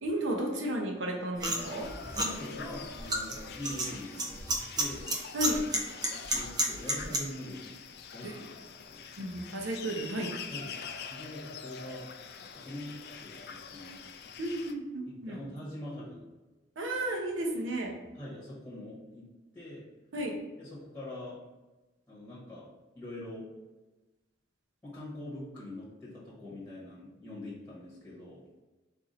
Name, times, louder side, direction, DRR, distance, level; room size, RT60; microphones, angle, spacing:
voice 1, 0.0-1.9 5.3-5.6 8.2-8.4 9.2-10.3 14.4-15.4 16.8-17.9 20.1-20.3, right 1 dB, 85° right, 1 dB, 0.8 m, -33 dB
sound 1, 1.4-7.2, right 1 dB, 20° right, 0.5 m, -32 dB
sound 2, 1.6-14.7, left 6 dB, 55° left, 0.3 m, -45 dB
voice 2, 2.1-4.4 4.7-5.1 6.3-7.7 8.1-8.5 8.9-9.0 10.5-10.7 11.1-12.1 12.3-14.0 15.1-16.2 17.8-19.3 19.5-19.8 20.6-21.4 22.1-23.5 24.8-28.4, left 1 dB, 10° left, -8 dB, 1.1 m, -43 dB
4.1 x 2.7 x 4.2 m, 1.1 s
head